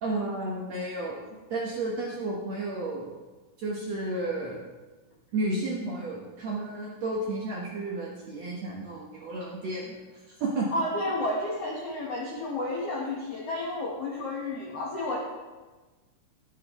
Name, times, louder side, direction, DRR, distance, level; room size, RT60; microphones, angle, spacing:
voice 1, 0.0-1.2 1.5-3.1 3.6-4.6 5.3-10.7, right 2 dB, 65° right, -3 dB, 1.8 m, -32 dB
voice 2, 10.7-15.2, left 1 dB, 70° left, -2 dB, 1.4 m, -31 dB
13.0 x 10.0 x 3.0 m, 1.3 s
omnidirectional pair, 4.4 m